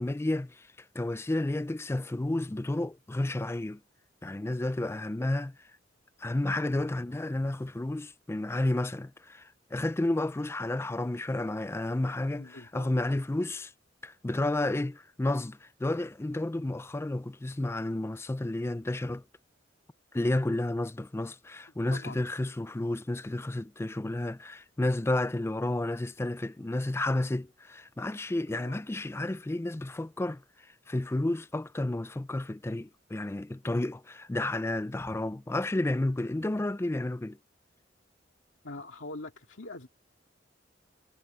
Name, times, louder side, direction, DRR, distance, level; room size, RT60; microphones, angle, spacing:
voice 1, 0.0-3.8 4.2-5.7 6.2-13.7 14.0-19.2 20.1-37.4, left 1 dB, 15° left, 0.4 m, -31 dB
voice 2, 12.4-12.9 21.9-22.2 28.5-28.8 38.6-39.9, left 2 dB, 80° left, 2.3 m, -43 dB
head